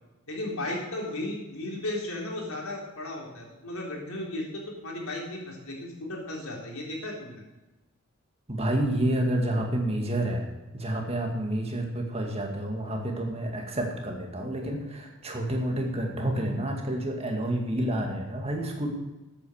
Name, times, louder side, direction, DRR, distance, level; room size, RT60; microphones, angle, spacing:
voice 1, 0.3-7.4, left 1 dB, 80° left, -1 dB, 3.8 m, -35 dB
voice 2, 8.5-10.5 10.7-18.9, right 1 dB, 30° right, 2 dB, 2.1 m, -29 dB
13.0 x 8.8 x 6.5 m, 1.1 s
head